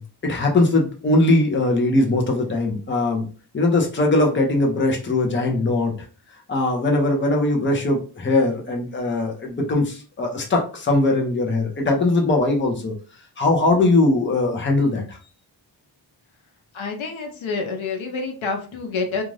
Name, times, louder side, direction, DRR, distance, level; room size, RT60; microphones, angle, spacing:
voice 1, 0.2-3.3 3.5-5.9 6.5-12.9 13.4-15.2, left 2 dB, 25° left, 1 dB, 0.7 m, -20 dB
voice 2, 16.7-19.2, left 4 dB, 85° left, 3 dB, 0.8 m, -28 dB
2.6 x 2.4 x 3.2 m, 0.36 s
wide cardioid pair, 150°, 46 cm